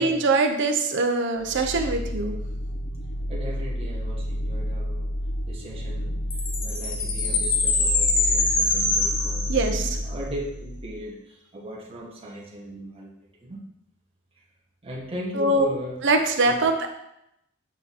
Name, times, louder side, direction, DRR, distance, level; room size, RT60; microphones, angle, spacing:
voice 1, 0.0-2.4 9.5-9.9 15.3-15.7 16.0-16.9, right 2 dB, 60° right, 4 dB, 0.7 m, -22 dB
sound 1, 1.4-11.0, equal, 40° left, 0.5 m, -30 dB
voice 2, 3.3-5.0 5.4-13.1 13.4-13.6 14.8-16.0 16.4-16.6, equal, 30° right, -4 dB, 1.3 m, -37 dB
Chime, 6.3-10.0, left 3 dB, 60° left, 1.1 m, -24 dB
8.0 x 2.9 x 4.1 m, 0.81 s
head